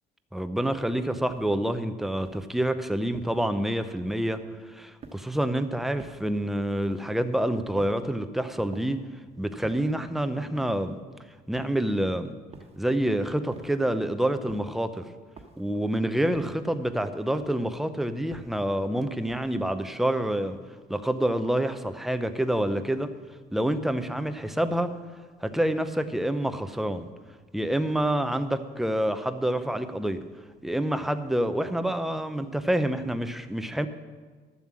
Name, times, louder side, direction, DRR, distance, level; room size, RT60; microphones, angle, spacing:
voice 1, 0.3-4.4 4.7-9.0 9.4-11.0 11.5-12.3 12.8-15.1 15.6-20.6 20.9-23.1 23.5-24.9 25.4-27.1 27.5-30.2 30.6-33.9, right 1 dB, ahead, 9 dB, 0.7 m, -27 dB
sound 1, 1.3-1.7 2.2-2.6 3.1-3.5 4.1-4.5 5.0-5.5 6.0-6.4 6.9-7.2 7.8-8.2 8.7-9.1 9.6-10.0 10.6-11.0 11.5-12.0 12.5-12.9 13.5-13.9 14.5-14.8 15.4-15.8 16.3-16.7 17.3-17.7 18.3-18.7 19.3-19.7, right 3 dB, 35° right, 1.3 m, -49 dB
12.0 x 7.4 x 7.4 m, 1.4 s
cardioid pair, 110°, 17 cm